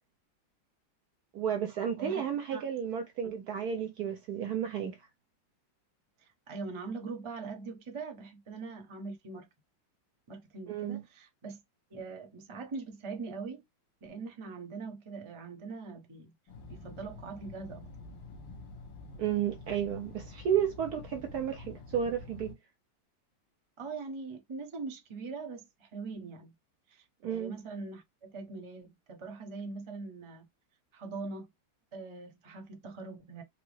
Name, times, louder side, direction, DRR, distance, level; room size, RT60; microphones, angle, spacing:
voice 1, 1.3-5.0 10.7-11.0 19.2-22.6 27.2-27.5, right 8 dB, 70° right, 1.0 m, -32 dB
voice 2, 6.2-9.5 10.3-11.6 11.9-13.6 14.0-16.3 16.7-17.9 23.8-26.5 26.9-30.5 30.9-31.5 31.9-33.4, right 4 dB, 35° right, 0.5 m, -42 dB
sound 1, 16.5-22.5, left 3 dB, 75° left, 1.6 m, -47 dB
4.5 x 2.0 x 3.1 m
omnidirectional pair, 2.1 m